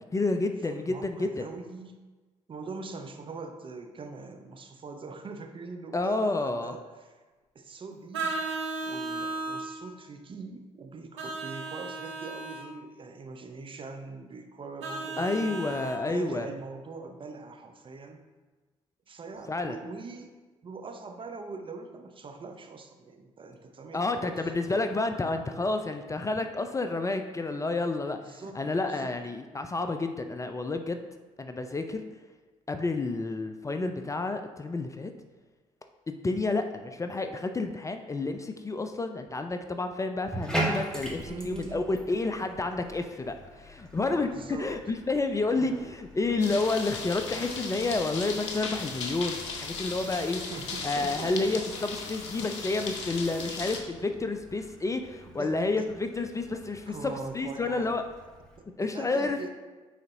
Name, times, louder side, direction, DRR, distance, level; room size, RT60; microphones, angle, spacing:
voice 1, 0.0-1.4 5.9-6.8 15.2-16.5 19.5-19.8 23.9-31.0 31.4-32.0 32.7-35.1 36.1-50.4 50.8-58.0 58.8-59.4, left 3 dB, 20° left, 7 dB, 0.5 m, -30 dB
voice 2, 0.6-2.0 2.5-7.2 7.5-8.5 8.8-15.6 16.0-18.2 19.1-20.3 20.6-24.5 26.2-26.3 28.2-28.6 28.9-29.2 41.2-41.9 44.3-44.7 45.6-45.7 50.0-51.4 53.4-53.6 55.4-55.9 56.9-58.0 58.6-59.5, right 4 dB, 35° right, 5 dB, 0.7 m, -42 dB
Vehicle horn car horn honking, 8.1-9.7 11.2-12.7 14.8-16.0, right 3 dB, 80° right, 0.8 m, -35 dB
Bathtub (filling or washing), 40.2-58.6, right 1 dB, 5° left, 1.6 m, -41 dB
sound 1, 46.4-53.8, left 4 dB, 80° left, 0.6 m, -37 dB
9.1 x 3.9 x 2.6 m, 1.3 s
figure-of-eight pair, 45°, 15 cm